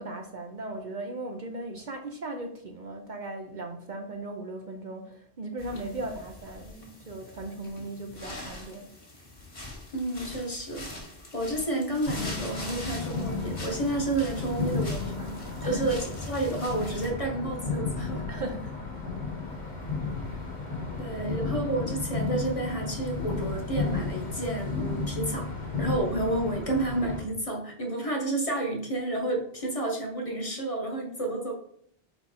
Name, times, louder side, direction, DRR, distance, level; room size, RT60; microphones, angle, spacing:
voice 1, 0.0-8.9 15.6-15.9 18.3-18.9 21.2-21.5, right 2 dB, 50° right, 0.7 m, -38 dB
sound 1, 5.6-17.1, left 2 dB, 55° left, 2.0 m, -43 dB
voice 2, 9.9-10.9 11.3-18.3 21.0-25.5 25.8-31.5, right 2 dB, 35° left, 1.2 m, -30 dB
sound 2, 12.0-27.2, left 4 dB, 85° left, 1.9 m, -33 dB
5.1 x 4.5 x 4.2 m
omnidirectional pair, 1.1 m